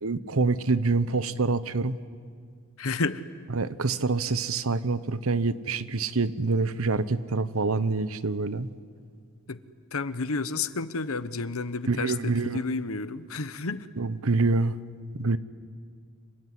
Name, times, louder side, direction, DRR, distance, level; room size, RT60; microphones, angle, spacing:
voice 1, 0.0-2.0 3.5-8.7 11.8-12.6 14.0-14.8 15.2-15.4, right 3 dB, 75° right, 14 dB, 1.0 m, -26 dB
voice 2, 2.8-3.2 9.5-9.6 9.9-13.9, left 4 dB, 75° left, 13 dB, 1.1 m, -31 dB
26.5 x 24.0 x 9.5 m, 2.1 s
head